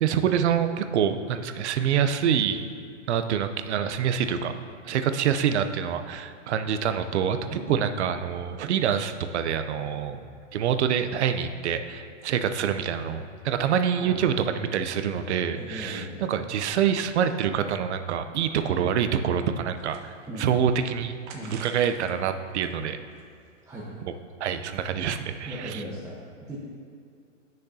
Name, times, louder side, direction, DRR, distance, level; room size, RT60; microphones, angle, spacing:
voice 1, 0.0-2.6 3.1-4.5 4.8-10.2 10.5-21.1 21.6-23.0 24.4-25.8, right 8 dB, 60° right, 9 dB, 0.7 m, -26 dB
voice 2, 7.5-8.0 13.9-14.3 15.5-16.2 20.3-20.5 21.3-21.6 23.7-23.9 25.4-26.6, right 1 dB, 10° right, -7 dB, 1.1 m, -38 dB
sound 1, 19.6-20.5 21.3-22.1 22.5-23.7, right 4 dB, 40° right, 1.3 m, -48 dB
16.5 x 6.5 x 2.8 m, 2.2 s
hypercardioid pair, 135°, 39 cm